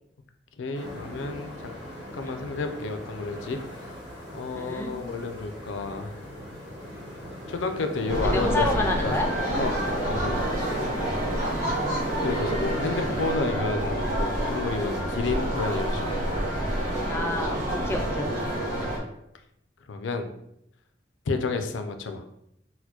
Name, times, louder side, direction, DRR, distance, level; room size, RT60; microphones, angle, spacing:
voice 1, 0.6-1.7 2.2-3.6 4.3-6.1 7.5-9.2 9.6-9.8 10.1-10.5 12.2-16.1 19.9-20.3 21.3-22.2, left 3 dB, 80° left, 7 dB, 0.4 m, -31 dB
sound 1, 0.7-13.3, equal, 90° right, 1.3 m, -39 dB
voice 2, 4.6-4.9 8.2-9.3 11.6-12.0 17.1-18.5, left 1 dB, 15° left, 1 dB, 0.3 m, -29 dB
sound 2, 8.1-19.0, right 1 dB, 40° right, 1.3 m, -28 dB
4.1 x 2.1 x 2.8 m, 0.78 s
head